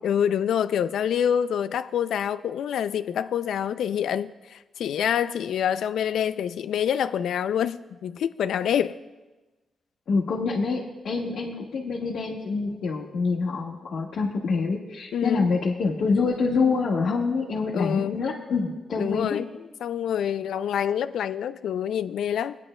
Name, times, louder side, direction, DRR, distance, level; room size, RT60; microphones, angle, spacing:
voice 1, 0.0-9.0 15.1-15.5 17.7-18.3 19.0-19.5 19.8-22.6, left 9 dB, 90° left, 14 dB, 0.3 m, -26 dB
voice 2, 10.1-19.4, left 4 dB, 70° left, -4 dB, 1.3 m, -26 dB
21.0 x 9.6 x 2.2 m, 1.2 s
cardioid pair, 100°, 0 cm